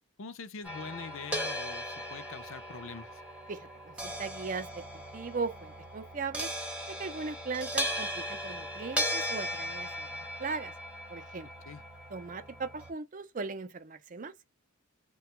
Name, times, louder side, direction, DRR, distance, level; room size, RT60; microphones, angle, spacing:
voice 1, 0.2-3.2 11.6-11.8, left 4 dB, 60° left, 0.5 m, -43 dB
sound 1, 0.6-12.9, equal, 5° right, 0.7 m, -37 dB
voice 2, 3.5-4.8 5.1-6.5 7.0-10.7 11.1-11.5 12.1-14.3, right 4 dB, 35° right, 0.4 m, -38 dB
3.3 x 2.3 x 2.9 m
head